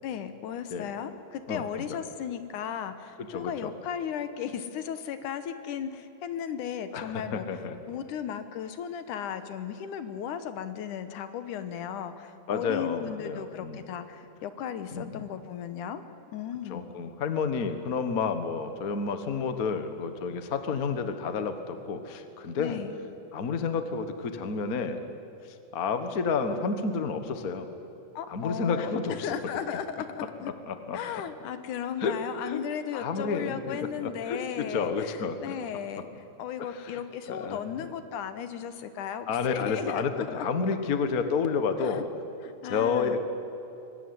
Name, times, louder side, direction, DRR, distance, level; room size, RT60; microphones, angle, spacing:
voice 1, 0.0-7.5 7.9-16.0 16.3-17.0 22.6-23.0 28.2-30.5 30.9-40.5 41.8-42.0 42.4-43.2, left 8 dB, 75° left, 11 dB, 2.6 m, -36 dB
voice 2, 1.5-1.8 3.2-3.7 6.9-7.7 12.5-13.8 14.9-15.2 16.7-22.8 23.3-25.0 25.4-27.7 28.3-29.3 30.7-31.0 32.0-32.2 32.4-32.6 32.9-35.5 36.7-37.0 37.3-37.6 39.3-42.1 42.7-43.2, left 5 dB, 45° left, 9 dB, 1.1 m, -30 dB
23.5 x 18.5 x 9.7 m, 2.9 s
omnidirectional pair, 3.7 m